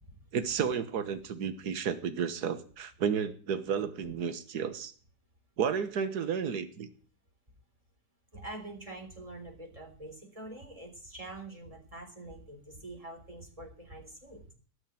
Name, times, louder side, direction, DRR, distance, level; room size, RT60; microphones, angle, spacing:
voice 1, 0.3-4.9 5.6-6.9, right 7 dB, 70° right, 10 dB, 1.8 m, -32 dB
voice 2, 8.3-14.5, right 2 dB, 20° right, 2 dB, 3.9 m, -45 dB
18.5 x 6.6 x 9.0 m, 0.42 s
omnidirectional pair, 1.8 m